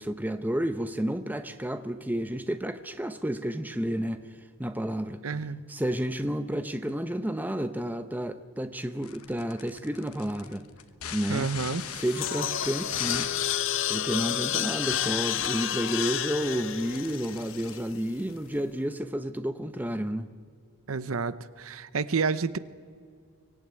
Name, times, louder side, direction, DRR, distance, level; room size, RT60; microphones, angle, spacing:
voice 1, 0.0-4.2 4.6-5.2 5.7-10.7 11.1-11.5 11.9-13.3 13.9-20.3, equal, 10° right, 9 dB, 0.8 m, -31 dB
voice 2, 5.2-5.6 11.3-11.8 20.9-22.6, right 5 dB, 75° right, 15 dB, 0.7 m, -29 dB
sound 1, 9.0-18.6, left 9 dB, 85° left, 1.2 m, -41 dB
sound 2, 11.8-18.1, left 10 dB, 60° left, 0.6 m, -30 dB
24.0 x 15.5 x 9.5 m, 2.1 s
head